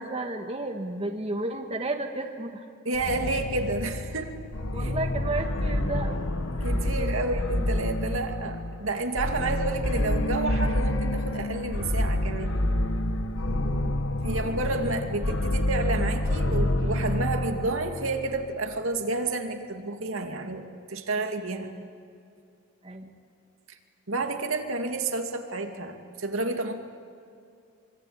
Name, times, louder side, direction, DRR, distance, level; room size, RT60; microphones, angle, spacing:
voice 1, 0.0-2.6 4.7-6.2 7.0-7.1 13.6-14.0 21.6-21.7 22.8-23.1, right 2 dB, 30° right, 3 dB, 1.6 m, -32 dB
voice 2, 2.8-4.4 4.7-5.0 6.6-12.6 14.2-21.7 23.7-23.8 24.1-26.8, right 2 dB, 80° right, 4 dB, 2.4 m, -30 dB
sound 1, 2.9-18.6, left 1 dB, 65° left, 1.3 m, -28 dB
25.5 x 24.5 x 8.8 m, 2.4 s
head